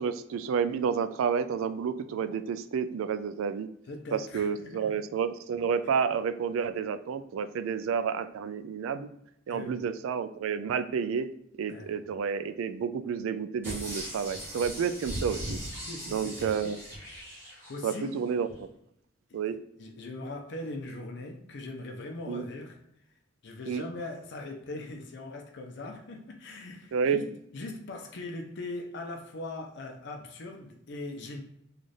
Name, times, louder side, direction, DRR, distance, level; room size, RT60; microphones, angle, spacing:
voice 1, 0.0-3.7 4.1-9.1 9.5-11.3 11.6-15.6 16.1-16.8 17.8-18.7 19.3-19.6 22.3-22.4 23.7-23.9 26.9-27.2, right 6 dB, 80° right, 12 dB, 0.3 m, -30 dB
voice 2, 3.9-5.0 5.8-6.0 9.5-9.9 11.7-12.0 15.8-16.7 17.7-18.2 19.3-22.8 23.4-27.2 27.5-31.4, left 2 dB, 60° left, 2 dB, 0.5 m, -40 dB
sound 1, 13.6-18.1 18.5-18.6, equal, 10° right, 1.4 m, -39 dB
3.2 x 2.4 x 4.0 m, 0.76 s
head